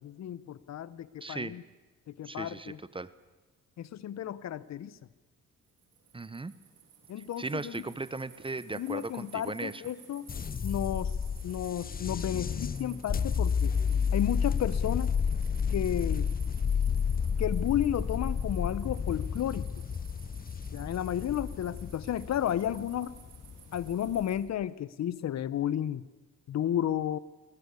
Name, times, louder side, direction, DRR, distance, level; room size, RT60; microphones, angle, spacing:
voice 1, 0.0-1.6 2.1-2.8 3.8-5.0 7.1-7.8 8.7-10.3 10.6-11.1 11.4-13.7 14.1-15.1 15.7-16.3 17.4-19.7 20.7-23.1 23.7-26.0 26.5-27.2, left 10 dB, 60° left, 18 dB, 0.9 m, -32 dB
voice 2, 1.2-1.6 2.2-3.1 6.1-6.5 7.2-9.8, right 3 dB, 15° right, 17 dB, 0.9 m, -37 dB
sound 1, 5.7-24.4, right 7 dB, 85° right, 7.0 m, -54 dB
sound 2, 10.3-24.5, left 6 dB, 30° left, 0.7 m, -31 dB
22.0 x 19.0 x 8.4 m, 1.2 s
cardioid pair, 90°, 30 cm